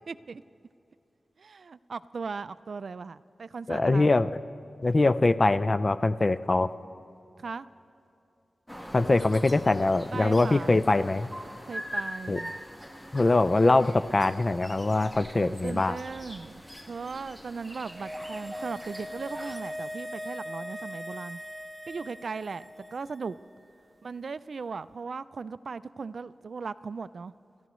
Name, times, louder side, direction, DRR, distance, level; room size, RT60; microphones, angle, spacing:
voice 1, 0.1-0.4 1.4-4.1 7.4-7.7 10.1-10.8 11.6-12.5 15.3-16.6 16.9-21.4 21.9-23.4 24.0-27.3, right 4 dB, 70° right, 15 dB, 0.3 m, -38 dB
voice 2, 3.7-4.3 4.8-6.7 8.9-11.3 12.3-12.4 13.1-16.0, left 2 dB, 35° left, 12 dB, 0.4 m, -23 dB
sound 1, 8.7-19.6, equal, 5° left, 1.3 m, -43 dB
sound 2, 17.7-23.2 23.4-23.5, equal, 10° right, 1.4 m, -40 dB
29.5 x 14.0 x 3.1 m, 2.7 s
wide cardioid pair, 85°, 0 cm